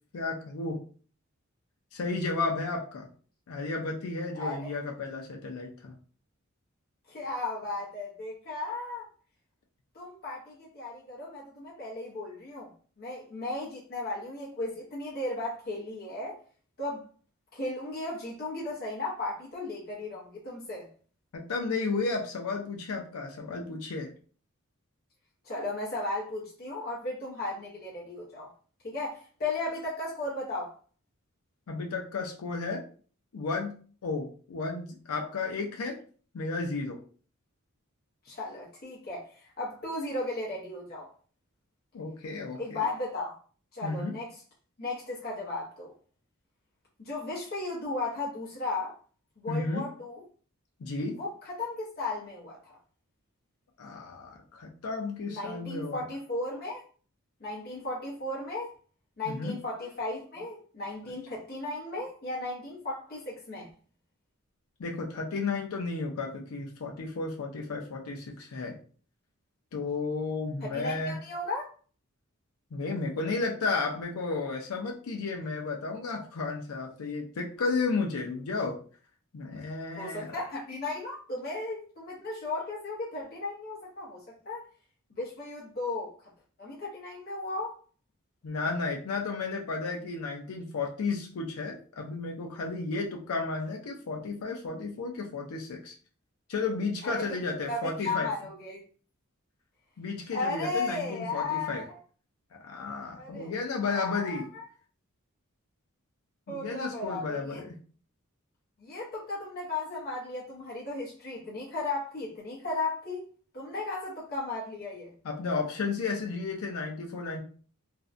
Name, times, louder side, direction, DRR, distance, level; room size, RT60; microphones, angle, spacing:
voice 1, 0.1-0.8 1.9-3.1 3.5-5.9 21.3-24.1 31.7-32.8 33.3-33.7 34.0-36.0 36.3-37.0 41.9-42.8 43.8-44.1 49.5-49.8 50.8-51.2 53.8-56.0 59.3-59.6 64.8-68.8 69.7-71.2 72.7-78.8 79.3-80.4 88.4-96.0 96.5-98.3 100.0-101.8 102.5-104.4 106.5-107.7 115.2-117.4, left 3 dB, 85° left, 0.4 m, -33 dB
voice 2, 4.3-4.8 7.1-9.1 9.9-12.7 13.0-16.4 16.8-17.1 17.5-20.9 25.4-28.5 28.8-30.7 38.2-41.1 42.5-43.4 43.7-44.4 44.8-45.9 47.0-48.9 49.4-50.2 51.2-52.7 55.3-56.8 57.4-58.7 59.2-63.7 70.6-71.7 79.9-84.6 85.1-86.3 86.6-87.8 97.0-97.4 97.7-98.8 100.3-102.0 103.2-103.6 103.8-104.6 106.5-107.6 108.8-113.3 113.5-115.1, left 2 dB, 45° left, 0.7 m, -35 dB
2.5 x 2.1 x 2.5 m
head